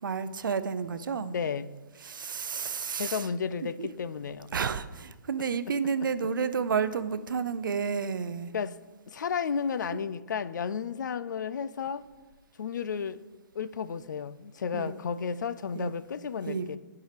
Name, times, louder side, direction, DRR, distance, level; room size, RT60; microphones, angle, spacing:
voice 1, 0.0-1.3 2.0-3.3 3.8-3.9 4.5-8.5 14.7-14.9 15.7-15.9 16.5-16.7, right 6 dB, 85° right, 13 dB, 0.6 m, -31 dB
voice 2, 1.2-1.7 2.9-4.5 8.5-8.8 9.1-12.0 12.6-13.2 13.5-16.8, left 6 dB, 65° left, 16 dB, 0.4 m, -33 dB
9.4 x 4.7 x 5.1 m, 1.2 s
hypercardioid pair, 170°, 11 cm